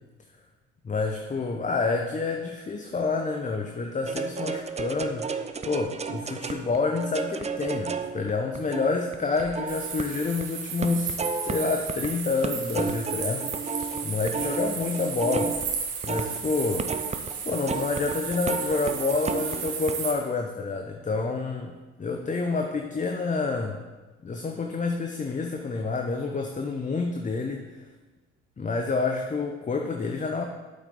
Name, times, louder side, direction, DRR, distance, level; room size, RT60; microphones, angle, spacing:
voice 1, 0.8-5.3 5.7-11.2 11.4-13.4 14.0-15.6 16.0-16.9 17.5-23.8 24.2-27.7 28.6-30.4, left 3 dB, 25° left, 3 dB, 0.8 m, -28 dB
sound 1, 4.1-10.5 10.8-12.1 12.4-19.9, right 5 dB, 20° right, 0.6 m, -33 dB
sound 2, 9.7-20.1, right 6 dB, 80° right, 1.6 m, -34 dB
8.6 x 8.1 x 3.8 m, 1.2 s
hypercardioid pair, 60°, 32 cm